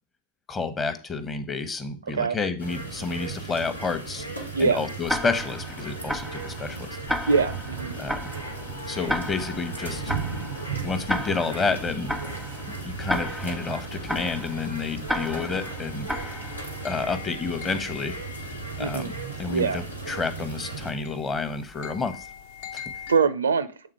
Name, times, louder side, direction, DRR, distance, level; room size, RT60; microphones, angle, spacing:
voice 1, 0.5-4.3 4.6-7.0 8.0-8.3 8.9-10.1 10.8-12.2 12.8-16.5 16.8-18.2 18.4-19.1 19.4-22.3 22.7-22.8, left 4 dB, 20° left, 0.9 m, -30 dB
sound 1, 2.6-20.9, right 4 dB, 85° left, 1.3 m, -36 dB
Tick-tock, 5.1-16.9, equal, ahead, 0.5 m, -34 dB
voice 2, 7.3-7.9 18.8-19.1 19.5-19.8 23.1-23.7, right 5 dB, 70° right, 0.4 m, -23 dB
sound 2, 8.4-23.2, left 7 dB, 55° left, 0.7 m, -45 dB
7.7 x 3.7 x 4.6 m
figure-of-eight pair, 90°, 0 cm